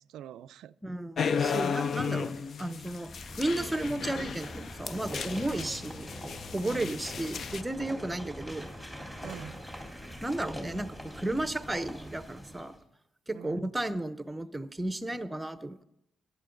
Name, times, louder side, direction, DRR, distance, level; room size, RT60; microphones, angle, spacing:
voice 1, 0.0-0.8 5.5-5.7 6.6-7.0 9.2-9.6 13.3-13.7, right 10 dB, 80° right, 0.3 m, -45 dB
voice 2, 0.8-3.1 3.4-6.1 6.5-8.7 10.2-12.7 13.3-15.8, right 1 dB, 10° right, 0.7 m, -33 dB
sound 1, 1.2-7.6, left 6 dB, 55° left, 0.4 m, -34 dB
sound 2, 2.8-12.8, equal, 15° left, 3.6 m, -43 dB
14.5 x 11.0 x 3.8 m
cardioid pair, 90°, 0 cm